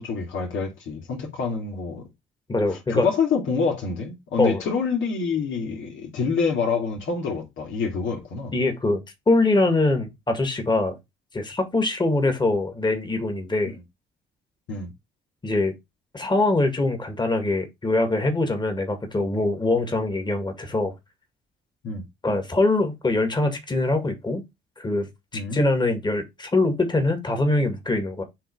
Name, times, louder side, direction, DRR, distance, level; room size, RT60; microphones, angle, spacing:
voice 1, 0.0-2.0 2.7-8.5 14.7-14.9 21.8-22.0 25.3-25.6, left 5 dB, 75° left, 2.5 m, -27 dB
voice 2, 2.5-3.1 4.4-4.6 8.5-11.0 11.3-13.7 15.4-15.7 16.1-20.9 22.2-24.4 24.8-28.2, left 2 dB, 20° left, 2.0 m, -23 dB
7.6 x 3.3 x 4.6 m
cardioid pair, 90°, 20 cm